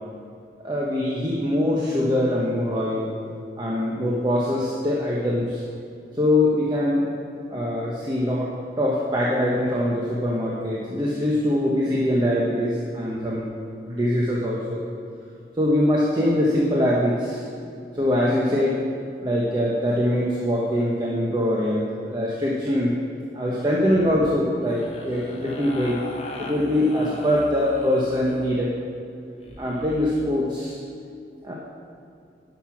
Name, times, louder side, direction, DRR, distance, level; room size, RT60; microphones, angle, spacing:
voice 1, 0.6-3.1 3.6-5.6 6.1-7.1 7.5-8.5 8.8-13.5 13.9-14.8 15.6-17.4 17.9-18.8 19.2-23.0 23.3-26.0 26.4-28.8 29.6-30.8 31.4-31.5, left 1 dB, 25° right, -4 dB, 1.0 m, -23 dB
sound 1, 24.6-28.5 29.4-30.1, left 2 dB, 35° left, 1.0 m, -38 dB
11.0 x 6.0 x 5.9 m, 2.5 s
head